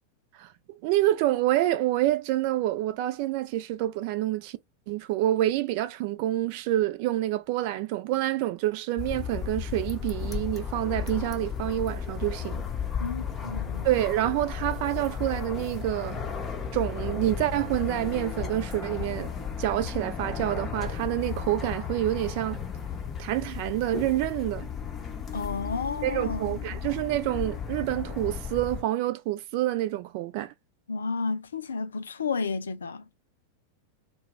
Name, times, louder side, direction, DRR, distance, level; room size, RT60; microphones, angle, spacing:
voice 1, 0.8-4.6 4.9-12.6 13.8-16.2 16.7-19.3 19.6-22.6 23.2-24.7 26.0-30.5, right 15 dB, 45° right, 0.4 m, -27 dB
sound 1, 9.0-28.8, left 7 dB, 20° left, 0.6 m, -34 dB
voice 2, 13.0-13.9 25.3-26.8 30.9-33.0, left 4 dB, 70° left, 0.4 m, -32 dB
2.3 x 2.1 x 3.4 m
figure-of-eight pair, 90°, 0 cm